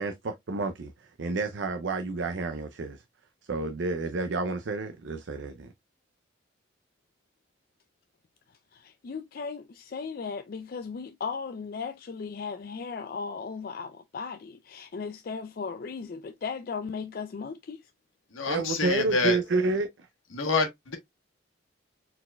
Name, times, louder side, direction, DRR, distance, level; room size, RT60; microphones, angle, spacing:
voice 1, 0.0-3.0 3.5-5.7 18.5-20.1, right 3 dB, 60° right, 0.5 m, -30 dB
voice 2, 8.7-17.8, left 5 dB, 45° left, 0.4 m, -36 dB
voice 3, 18.3-19.4 20.3-21.0, left 3 dB, 80° left, 1.2 m, -27 dB
4.4 x 4.0 x 2.2 m
head